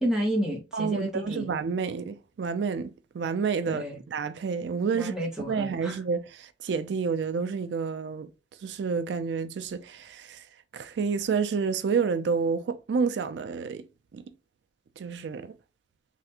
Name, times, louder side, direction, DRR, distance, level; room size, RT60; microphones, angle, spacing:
voice 1, 0.0-1.5 3.7-4.0 4.9-5.9, equal, 5° right, 0.9 m, -30 dB
voice 2, 0.7-5.1 5.5-8.3 8.6-10.5 10.7-13.9 14.1-14.2 15.0-15.5, right 5 dB, 75° right, 0.4 m, -29 dB
3.3 x 2.4 x 2.8 m
head